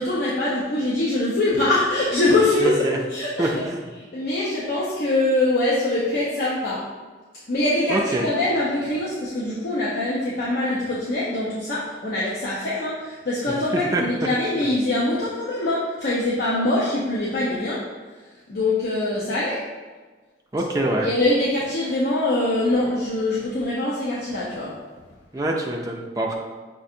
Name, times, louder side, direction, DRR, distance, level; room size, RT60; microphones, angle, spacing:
voice 1, 0.0-3.5 4.0-6.8 7.5-17.8 18.5-19.6 21.0-24.7, left 2 dB, 60° left, -7 dB, 0.7 m, -23 dB
voice 2, 2.6-3.0 3.4-3.9 7.9-8.3 13.5-14.0 20.5-21.1 25.3-26.3, right 1 dB, 20° right, -1 dB, 0.4 m, -25 dB
6.1 x 2.5 x 2.7 m, 1.3 s
head